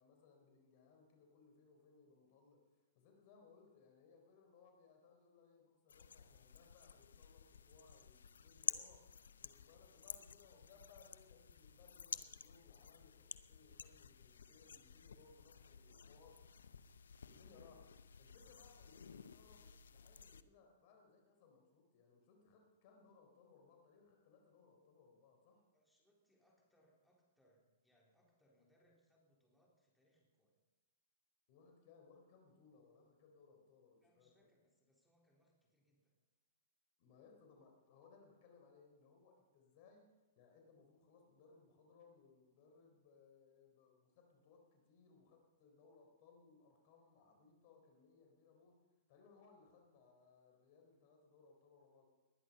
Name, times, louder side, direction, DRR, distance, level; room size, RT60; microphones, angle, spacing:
voice 1, 0.0-9.0 9.4-16.5 17.2-17.9 18.2-25.6 31.5-34.5 37.0-48.8 49.1-52.1, left 5 dB, 50° left, 2 dB, 4.1 m, -66 dB
sound 1, 5.9-20.4, left 6 dB, 80° left, 0.7 m, -51 dB
voice 2, 25.7-30.5 34.0-36.2, equal, 5° left, -3 dB, 3.8 m, -76 dB
20.0 x 11.0 x 5.5 m, 1.1 s
hypercardioid pair, 120°, 0 cm